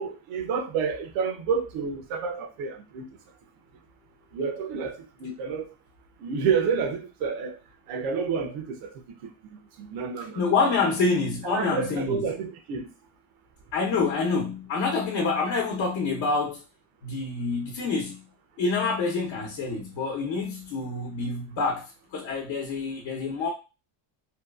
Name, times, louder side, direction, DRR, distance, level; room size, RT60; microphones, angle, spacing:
voice 1, 0.0-3.1 4.3-5.7 6.2-7.6 7.9-8.9 9.2-10.5 11.4-12.9, right 6 dB, 85° right, 0.7 m, -29 dB
voice 2, 10.4-12.2 13.7-16.6 17.0-18.2 18.6-21.8 22.1-23.5, left 4 dB, 60° left, 0.8 m, -27 dB
2.8 x 2.3 x 2.3 m
cardioid pair, 90°, 49 cm